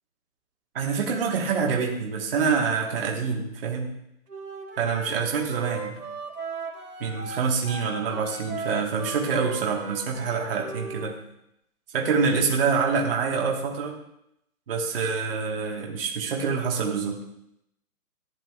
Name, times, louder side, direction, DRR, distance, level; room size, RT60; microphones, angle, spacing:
voice 1, 0.7-3.9 4.8-6.0 7.0-11.1 11.9-14.0 14.7-17.2, right 5 dB, 40° right, -1 dB, 1.5 m, -26 dB
Wind instrument woodwind instrument, 4.3-11.1, right 4 dB, 75° right, 2.3 m, -37 dB
14.5 x 10.0 x 2.4 m, 0.80 s
hypercardioid pair, 165°, 46 cm